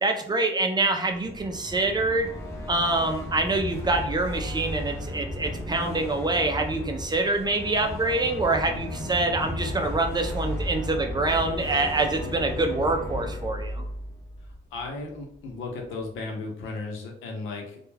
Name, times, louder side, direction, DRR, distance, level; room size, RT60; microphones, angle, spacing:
voice 1, 0.0-2.3 2.7-13.9, right 2 dB, 20° right, 5 dB, 0.4 m, -25 dB
sound 1, 1.1-15.1, left 1 dB, 15° left, 0.8 m, -34 dB
voice 2, 14.7-17.8, left 3 dB, 85° left, 1 dB, 0.8 m, -35 dB
2.3 x 2.2 x 3.2 m, 0.67 s
cardioid pair, 90°, 20 cm